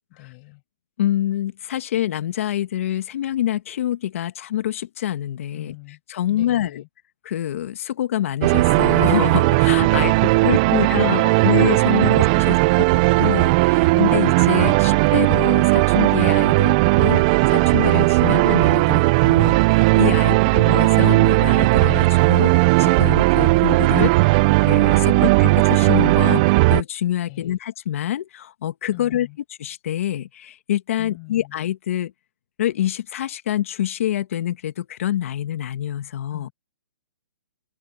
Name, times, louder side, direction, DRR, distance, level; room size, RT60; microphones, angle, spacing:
voice 1, 0.1-0.6 5.5-6.0 6.3-6.9 9.9-11.5 11.8-12.8 13.8-14.2 16.5-16.9 18.2-18.4 20.1-20.6 25.1-25.5 27.3-27.6 28.9-29.4 31.0-31.6 36.3-36.5, left 32 dB, 30° left, 6.8 m, -42 dB
voice 2, 1.0-5.7 6.1-6.8 7.2-10.1 10.4-12.9 13.2-26.4 26.7-29.3 29.6-32.1 32.6-36.5, left 11 dB, 55° left, 1.7 m, -26 dB
sound 1, 8.4-26.8, right 23 dB, 30° right, 0.5 m, -16 dB
hypercardioid pair, 150°, 9 cm